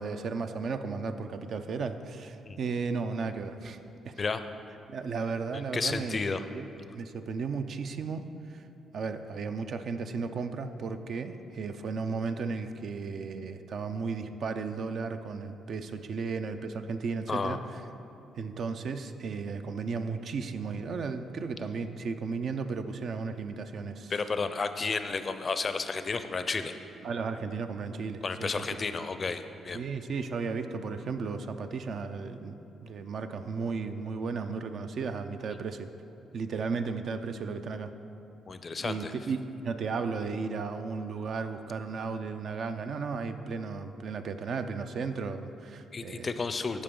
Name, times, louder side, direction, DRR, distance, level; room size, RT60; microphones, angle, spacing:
voice 1, 0.0-3.8 4.0-4.1 4.9-6.2 6.5-6.6 6.9-8.2 8.5-8.6 8.9-17.6 18.4-24.1 27.0-28.9 29.7-35.9 36.3-37.9 38.8-46.3, right 4 dB, 60° right, 8 dB, 0.5 m, -34 dB
voice 2, 5.7-6.4 17.3-17.6 24.1-26.7 28.2-29.8 38.5-39.1 45.9-46.8, left 4 dB, 35° left, 10 dB, 0.4 m, -32 dB
14.5 x 5.1 x 3.8 m, 2.8 s
cardioid pair, 90°, 0 cm